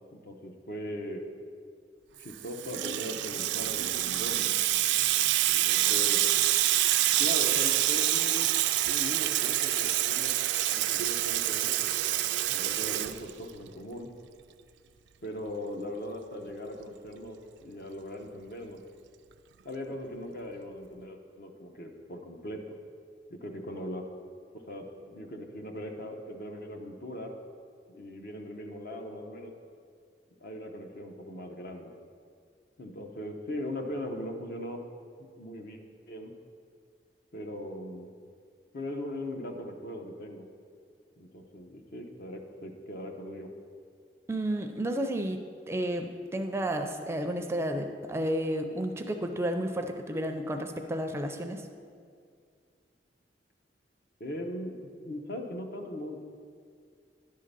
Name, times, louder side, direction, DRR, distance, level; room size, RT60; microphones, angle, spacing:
voice 1, 0.1-1.3 2.2-4.5 5.5-6.2 7.2-8.6 8.9-10.3 10.7-11.9 12.5-14.1 15.2-18.8 19.6-22.8 23.3-24.0 24.5-27.3 27.9-29.5 30.4-31.9 32.8-34.8 35.4-35.8 36.1-36.3 37.3-38.1 38.7-40.5 41.2-43.5 54.2-54.8 55.0-56.2, left 1 dB, 60° left, 3 dB, 0.9 m, -39 dB
Water tap faucet / Sink (filling or washing), 2.3-13.7, right 14 dB, 85° right, 0.3 m, -27 dB
voice 2, 44.3-45.4 45.7-51.6, right 1 dB, 15° right, 5 dB, 0.4 m, -31 dB
10.5 x 3.8 x 6.7 m, 2.2 s
head